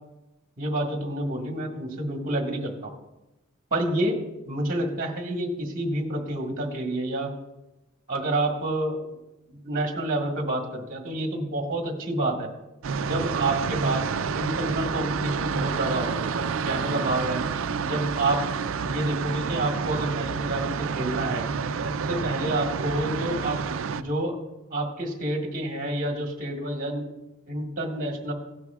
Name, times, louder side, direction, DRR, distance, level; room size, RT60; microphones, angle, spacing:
voice 1, 0.6-2.9 3.7-4.2 4.5-7.3 8.1-9.0 9.5-12.5 13.0-14.1 14.3-17.4 17.8-18.4 18.8-21.4 21.9-23.6 23.9-24.4 24.7-27.0 27.5-28.3, right 1 dB, 40° right, 1 dB, 1.6 m, -28 dB
sound 1, 12.8-24.0, right 5 dB, 65° right, 0.4 m, -29 dB
16.5 x 11.0 x 2.4 m, 0.95 s
head